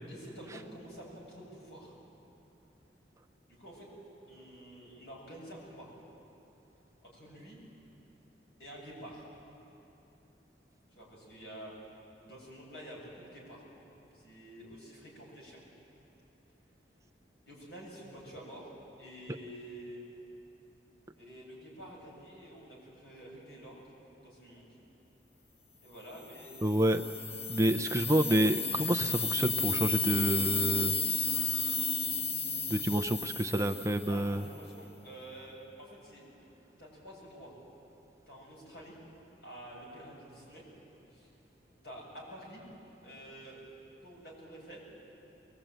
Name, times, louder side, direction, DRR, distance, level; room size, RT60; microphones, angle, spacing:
voice 1, 0.1-1.9 3.5-3.9 4.3-5.9 7.0-7.6 8.6-9.3 11.0-11.7 12.2-13.6 14.1-15.6 17.5-18.7 19.0-20.0 21.2-23.9 24.2-24.7 25.8-26.6 27.6-28.0 34.1-36.3 36.8-37.5 38.3-38.9 39.4-40.6 41.1-41.3 41.8-42.6 43.0-43.6 44.0-44.9, right 1 dB, 70° left, -3 dB, 7.6 m, -49 dB
sound 1, 26.4-34.4, left 5 dB, 30° left, 0.8 m, -33 dB
voice 2, 26.6-27.0 27.5-31.0 31.3-31.8 32.7-34.4, right 1 dB, 15° right, 7 dB, 0.5 m, -29 dB
22.5 x 19.5 x 9.0 m, 2.9 s
head